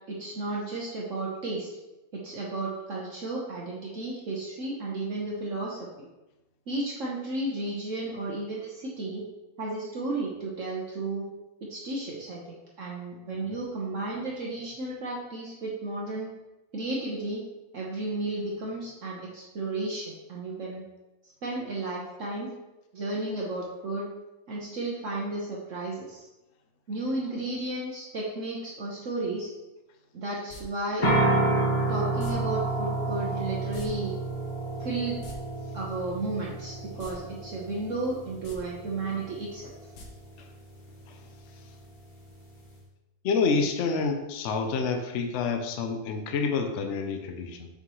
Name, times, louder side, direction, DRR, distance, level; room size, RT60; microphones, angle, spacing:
voice 1, 0.1-1.7 2.1-6.1 6.7-9.2 9.6-11.3 11.6-16.3 16.7-17.4 17.7-20.8 21.4-22.5 22.9-24.1 24.5-26.2 26.9-29.5 30.1-31.1 31.9-34.1 34.8-35.2 35.7-39.7, right 2 dB, 60° right, -3 dB, 1.2 m, -33 dB
sound 1, 30.5-30.6 32.2-32.3 33.7-33.9 34.1-34.2 35.1-35.3 37.0-37.1 37.5-37.6 38.3-38.6 39.9-40.1 40.4-40.5, left 2 dB, 85° left, 1.6 m, -44 dB
sound 2, 31.0-42.8, right 2 dB, 35° left, 1.1 m, -31 dB
voice 2, 43.2-47.7, left 4 dB, 60° left, 5 dB, 0.9 m, -28 dB
6.7 x 4.6 x 3.1 m, 0.99 s
omnidirectional pair, 1.6 m